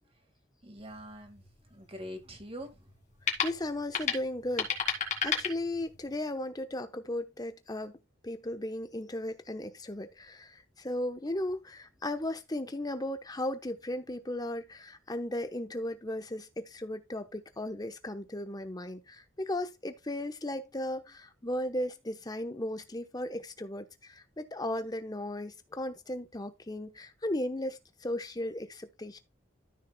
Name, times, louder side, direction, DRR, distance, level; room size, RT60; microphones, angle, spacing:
voice 1, 0.6-1.4 1.7-2.9, equal, 30° right, 1.8 m, -44 dB
sound 1, 0.8-6.2, left 6 dB, 35° left, 2.1 m, -35 dB
voice 2, 3.4-4.7 5.2-8.0 8.2-29.2, left 1 dB, 20° left, 0.9 m, -36 dB
13.0 x 6.3 x 2.2 m
head